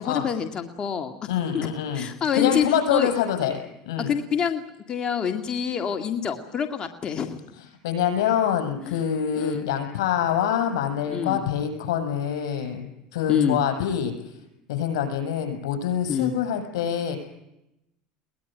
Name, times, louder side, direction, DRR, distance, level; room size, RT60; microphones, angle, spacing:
voice 1, 0.0-1.2 1.5-1.7 1.9-2.6 2.9-3.1 4.0-4.6 4.9-7.5 8.8-9.0 9.4-9.6 11.1-11.4 13.3-13.6 16.1-16.3, left 7 dB, 35° left, 6 dB, 2.0 m, -26 dB
voice 2, 1.3-2.1 2.3-3.6 3.9-4.1 7.8-14.1 14.7-17.2, left 8 dB, 85° left, 6 dB, 7.2 m, -25 dB
23.0 x 19.5 x 9.1 m, 0.88 s
supercardioid pair, 100°, 2 cm